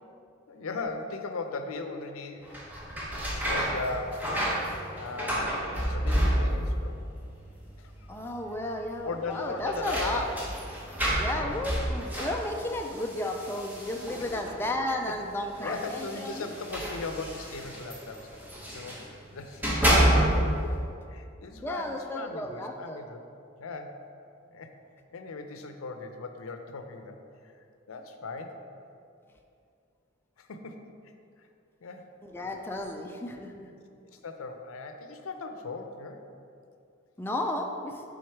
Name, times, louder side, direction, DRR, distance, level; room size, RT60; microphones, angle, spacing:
voice 1, 0.5-2.5 3.3-4.6 5.0-7.0 7.8-8.2 9.0-10.3 11.3-11.7 14.2-14.7 15.1-15.2 15.6-18.3 18.7-19.0 19.3-19.8 21.1-23.2 23.6-24.0 24.5-24.7 25.1-27.1 27.9-28.6 30.4-31.1 31.8-32.0 33.7-33.8 34.1-36.2, left 3 dB, 90° left, 6 dB, 0.5 m, -38 dB
sound 1, 2.4-6.9 7.1-7.8 8.1-8.2 9.3-14.7 15.6-19.1 19.5-20.6, equal, 10° right, 0.9 m, -29 dB
voice 2, 8.1-10.3 11.2-16.5 21.6-23.0 32.2-33.7 37.2-37.9, left 1 dB, 10° left, 2 dB, 0.3 m, -33 dB
6.4 x 3.9 x 4.5 m, 2.5 s
head